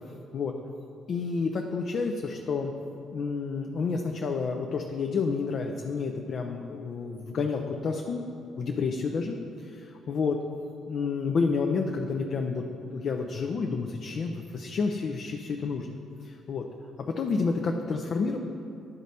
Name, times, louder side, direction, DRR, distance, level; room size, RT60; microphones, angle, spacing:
voice 1, 0.1-0.5 1.1-2.7 3.1-8.2 8.6-10.4 10.9-16.6 17.1-18.4, left 4 dB, 55° left, 3 dB, 0.5 m, -30 dB
10.5 x 4.1 x 4.0 m, 2.6 s
hypercardioid pair, 45°, 0 cm